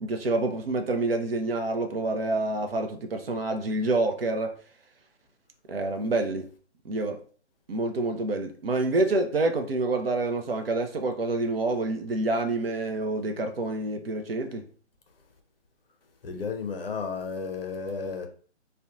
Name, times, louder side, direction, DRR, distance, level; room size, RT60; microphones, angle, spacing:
voice 1, 0.0-4.6 5.7-6.5 6.8-7.2 7.7-14.6, right 2 dB, 55° right, 0.5 m, -27 dB
voice 2, 16.2-18.3, left 5 dB, 55° left, 0.5 m, -33 dB
2.6 x 2.1 x 2.3 m
figure-of-eight pair, 155°, 36 cm